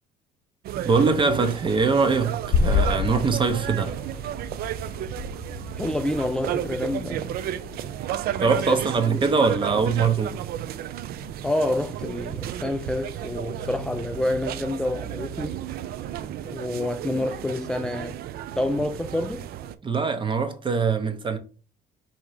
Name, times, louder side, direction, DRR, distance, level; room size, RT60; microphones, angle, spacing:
sound 1, 0.6-19.7, right 11 dB, 65° right, 0.4 m, -33 dB
voice 1, 0.8-4.0 8.4-10.4 19.8-21.4, right 4 dB, 30° right, 0.7 m, -22 dB
sound 2, 2.4-8.7, left 5 dB, 70° left, 0.8 m, -30 dB
voice 2, 5.8-7.4 8.7-9.3 11.4-15.6 16.4-18.2 18.6-19.5, left 1 dB, 5° left, 0.3 m, -28 dB
3.7 x 2.9 x 4.7 m
cardioid pair, 110°, 17 cm